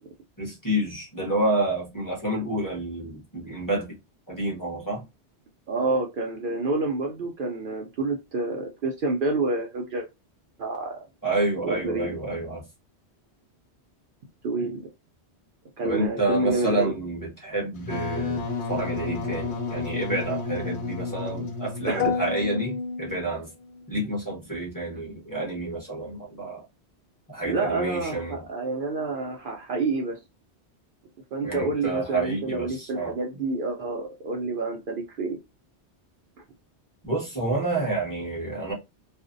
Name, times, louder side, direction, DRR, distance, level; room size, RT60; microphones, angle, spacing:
voice 1, 0.4-4.0 4.3-5.0 11.2-12.6 15.8-23.5 23.9-26.6 27.3-28.4 31.4-33.1 37.0-38.7, right 2 dB, 20° left, 0.9 m, -29 dB
voice 2, 5.7-10.1 10.6-11.0 11.6-12.2 14.4-14.9 15.8-16.9 21.9-22.1 24.9-25.0 27.4-30.2 31.3-35.4, right 3 dB, 60° right, 0.6 m, -28 dB
Wind instrument woodwind instrument, 17.8-22.3, left 4 dB, 80° left, 1.0 m, -31 dB
sound 1, 22.0-24.0, left 6 dB, 60° left, 0.3 m, -30 dB
2.5 x 2.1 x 2.5 m
omnidirectional pair, 1.1 m